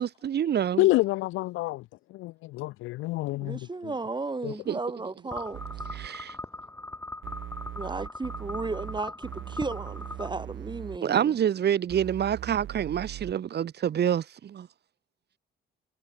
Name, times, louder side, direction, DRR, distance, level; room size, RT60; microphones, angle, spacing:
voice 1, 0.0-0.9 4.7-4.8 5.9-6.4 11.0-14.7, right 9 dB, 55° right, 1.7 m, -27 dB
voice 2, 0.8-1.8 2.1-3.6 4.4-4.5, left 19 dB, 90° left, 0.5 m, -27 dB
voice 3, 3.4-5.6 7.7-11.3, right 3 dB, 20° right, 4.7 m, -34 dB
sound 1, 5.3-10.3, left 2 dB, 10° left, 1.5 m, -40 dB
sound 2, 5.5-6.1 7.2-11.0 11.9-13.3, right 12 dB, 75° right, 2.6 m, -40 dB
cardioid pair, 90°, 20 cm